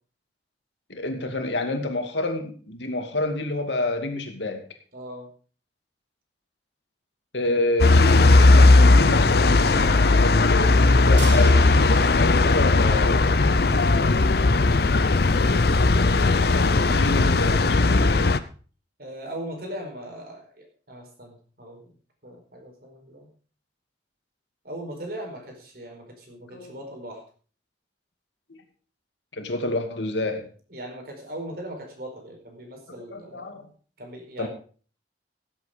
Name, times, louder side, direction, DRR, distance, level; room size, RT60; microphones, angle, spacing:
voice 1, 0.9-4.7 7.3-13.2 16.8-18.4 26.5-26.7 29.3-30.5 33.1-33.6 34.4-34.5, left 2 dB, 85° left, 6 dB, 2.3 m, -28 dB
voice 2, 4.9-5.3 12.8-13.9 19.0-21.9 22.2-23.3 24.6-27.2 30.7-33.7 34.0-34.5, right 1 dB, 55° right, 2 dB, 4.7 m, -39 dB
sound 1, 7.8-18.4, left 3 dB, 60° left, 0.7 m, -17 dB
sound 2, 11.2-13.3 13.6-13.7 14.1-14.2, right 4 dB, 80° right, 3.2 m, -40 dB
16.0 x 8.3 x 5.1 m, 0.41 s
head